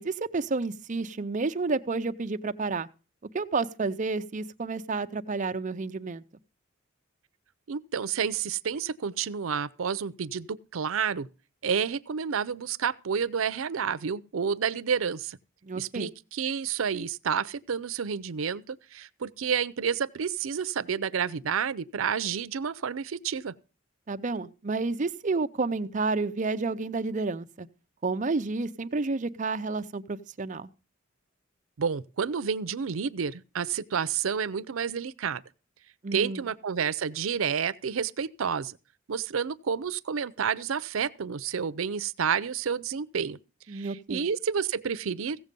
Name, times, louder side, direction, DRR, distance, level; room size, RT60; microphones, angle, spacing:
voice 1, 0.0-2.9 3.3-6.2 15.6-16.1 24.1-27.7 28.0-30.7 36.0-36.4 43.7-44.3, right 3 dB, 40° right, 0.6 m, -30 dB
voice 2, 7.7-11.3 11.6-15.4 15.7-23.5 31.8-35.4 36.1-38.8 39.1-43.4 43.7-45.4, right 7 dB, 85° right, 0.5 m, -30 dB
16.0 x 7.4 x 5.3 m
head